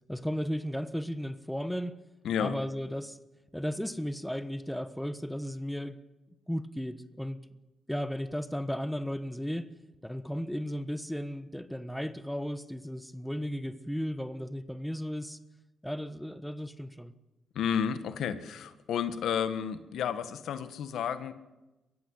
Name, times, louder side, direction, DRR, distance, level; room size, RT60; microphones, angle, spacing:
voice 1, 0.1-1.9 2.4-3.2 3.5-6.0 6.5-7.4 7.9-9.7 10.0-15.4 15.8-17.1, equal, 5° left, 12 dB, 1.3 m, -35 dB
voice 2, 2.2-2.6 17.5-21.3, left 8 dB, 80° left, 11 dB, 1.5 m, -31 dB
23.0 x 15.5 x 8.1 m, 1.0 s
cardioid pair, 85°, 0 cm